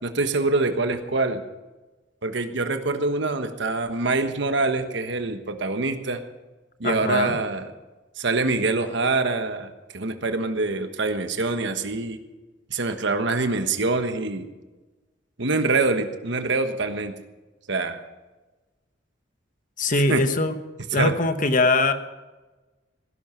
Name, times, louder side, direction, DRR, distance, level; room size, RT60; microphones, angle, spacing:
voice 1, 0.0-1.4 2.2-6.2 6.8-7.7 8.2-12.2 12.7-14.4 15.4-17.1 17.7-18.0 20.1-20.2 20.9-21.1, right 3 dB, 65° right, 8 dB, 1.3 m, -25 dB
voice 2, 6.8-7.4 19.8-20.5 20.9-21.9, left 2 dB, 45° left, 10 dB, 1.2 m, -21 dB
17.5 x 11.0 x 5.8 m, 1.2 s
head